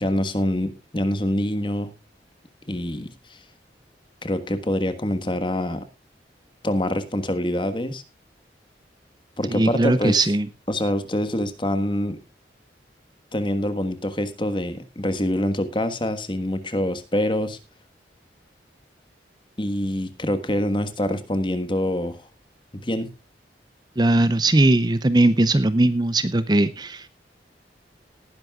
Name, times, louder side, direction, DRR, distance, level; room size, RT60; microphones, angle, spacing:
voice 1, 0.0-1.9 2.7-3.4 4.2-5.8 6.6-8.0 9.4-10.2 10.7-12.2 13.3-17.6 19.6-22.2 22.7-23.1, left 1 dB, 30° left, 10 dB, 1.4 m, -25 dB
voice 2, 9.5-10.5 24.0-27.1, right 2 dB, 25° right, 14 dB, 0.6 m, -19 dB
18.5 x 11.0 x 2.4 m, 0.25 s
head